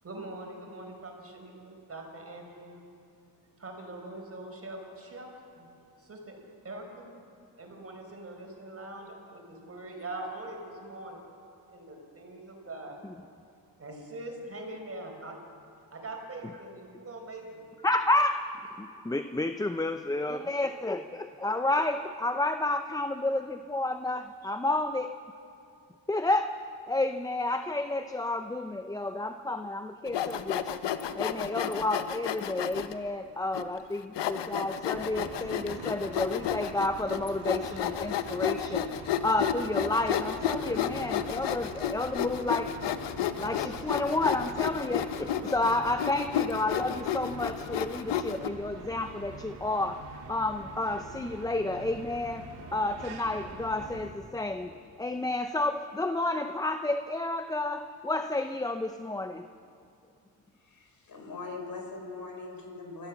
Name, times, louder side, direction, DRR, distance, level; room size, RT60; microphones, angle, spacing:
voice 1, 0.0-2.8 3.6-5.7 6.0-7.2 7.6-11.2 11.7-13.0 13.8-15.4 15.9-17.6, right 2 dB, 35° right, 2 dB, 4.8 m, -43 dB
voice 2, 17.8-18.5 18.8-25.1 26.1-26.6 26.9-30.8 31.1-42.8 43.4-50.0 50.3-54.7 55.0-59.5, left 2 dB, 10° left, 8 dB, 0.6 m, -30 dB
Sawing, 30.1-32.9 33.5-33.6 34.1-48.5, left 10 dB, 80° left, 1.0 m, -32 dB
sound 1, 34.9-54.1, right 2 dB, 70° right, 3.1 m, -45 dB
voice 3, 60.6-63.1, left 3 dB, 55° left, 2 dB, 4.3 m, -41 dB
25.5 x 14.0 x 7.2 m, 2.5 s
cardioid pair, 100°, 42 cm